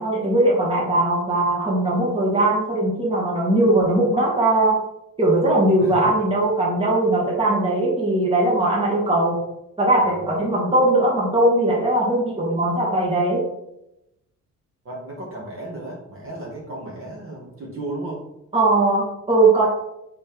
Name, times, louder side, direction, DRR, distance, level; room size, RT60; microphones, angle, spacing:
voice 1, 0.0-4.8 5.2-9.3 9.8-13.4 18.5-19.7, right 2 dB, 20° right, -4 dB, 2.2 m, -19 dB
voice 2, 5.8-6.1 10.0-10.3 14.8-18.2, right 2 dB, 45° right, -4 dB, 2.3 m, -34 dB
4.3 x 4.1 x 5.5 m, 0.85 s
cardioid pair, 90°, 30 cm